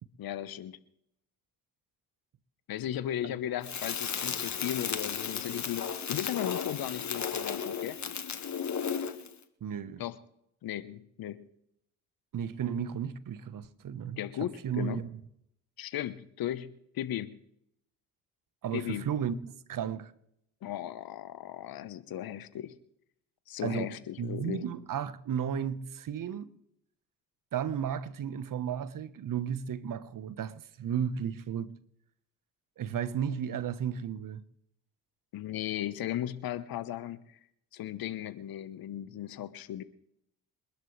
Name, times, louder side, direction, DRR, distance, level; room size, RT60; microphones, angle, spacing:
voice 1, 0.2-0.8 2.7-8.0 10.0-10.1 10.6-11.5 14.2-15.0 15.8-17.4 18.7-19.1 20.6-22.7 23.5-24.6 35.3-37.4 37.7-39.8, left 12 dB, 65° left, 1.2 m, -36 dB
Crackle, 3.6-9.3, left 7 dB, 45° left, 1.9 m, -34 dB
voice 2, 9.6-10.0 12.3-15.1 18.6-19.4 19.7-20.1 23.6-23.9 24.2-26.5 27.5-31.7 32.8-34.4, right 8 dB, 55° right, 1.2 m, -34 dB
28.0 x 11.5 x 3.3 m
hypercardioid pair, 45°, 39 cm